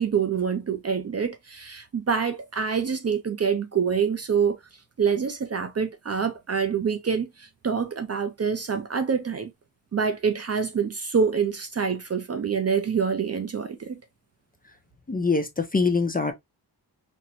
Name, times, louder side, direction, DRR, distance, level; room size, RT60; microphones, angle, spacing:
voice 1, 0.0-4.6 5.0-9.5 9.9-14.0, right 6 dB, 40° right, 0.4 m, -26 dB
voice 2, 15.1-16.3, left 4 dB, 20° left, 0.5 m, -24 dB
4.2 x 2.1 x 2.4 m
wide cardioid pair, 105°, 42 cm